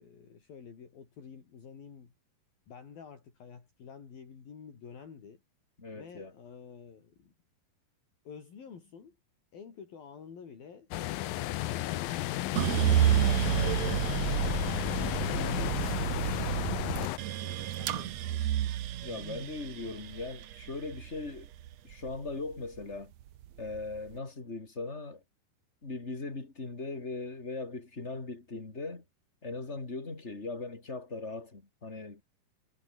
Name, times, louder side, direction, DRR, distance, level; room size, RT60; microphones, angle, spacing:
voice 1, 0.0-2.1 2.7-5.4 5.9-7.3 8.3-9.2 9.5-14.0 14.8-16.5 16.8-18.5, left 6 dB, 60° left, 5.9 m, -50 dB
voice 2, 5.8-6.3 19.0-21.5 21.8-23.1 23.6-25.2 25.8-29.0 29.4-32.2, left 3 dB, 20° left, 3.0 m, -39 dB
sound 1, 10.9-17.2, left 16 dB, 75° left, 2.2 m, -33 dB
sound 2, 12.6-22.8 23.2-24.0, right 12 dB, 85° right, 1.5 m, -30 dB
omnidirectional pair, 4.9 m